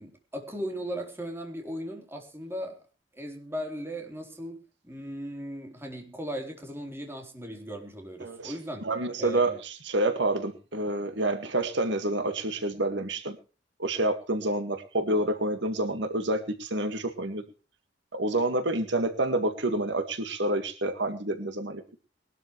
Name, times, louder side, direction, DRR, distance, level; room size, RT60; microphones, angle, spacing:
voice 1, 0.0-2.9 3.1-8.8 9.2-9.6, equal, 15° right, 4.0 m, -37 dB
voice 2, 8.2-13.4 13.8-17.4 18.1-22.0, right 1 dB, 70° right, 2.0 m, -28 dB
21.5 x 12.5 x 3.3 m
head